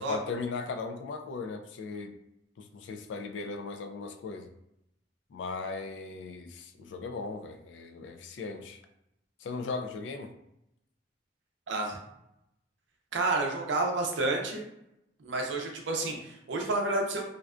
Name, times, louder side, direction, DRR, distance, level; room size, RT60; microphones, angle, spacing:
voice 1, 0.1-2.2 2.6-4.5 5.3-8.8 9.4-10.3, left 4 dB, 80° left, 6 dB, 0.3 m, -37 dB
voice 2, 11.7-12.0 13.1-14.6 15.2-17.3, right 2 dB, 85° right, 2 dB, 0.5 m, -30 dB
2.5 x 2.1 x 2.4 m, 0.83 s
head